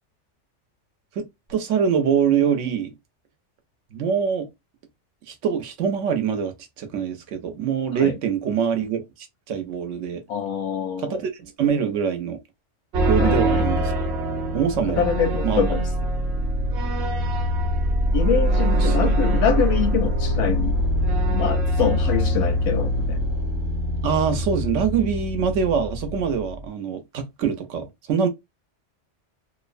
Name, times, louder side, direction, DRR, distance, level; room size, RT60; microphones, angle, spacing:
voice 1, 1.2-2.9 3.9-4.5 5.3-10.2 11.0-12.4 13.1-13.9 14.5-15.0 15.4-15.7 18.7-19.2 24.0-28.3, right 7 dB, 90° right, 1.0 m, -24 dB
voice 2, 10.3-11.2 13.2-13.6 15.0-15.9 18.1-20.8 21.3-23.2, left 7 dB, 80° left, 0.9 m, -25 dB
sound 1, 12.9-26.7, equal, 65° right, 0.9 m, -23 dB
2.7 x 2.1 x 2.4 m
omnidirectional pair, 1.2 m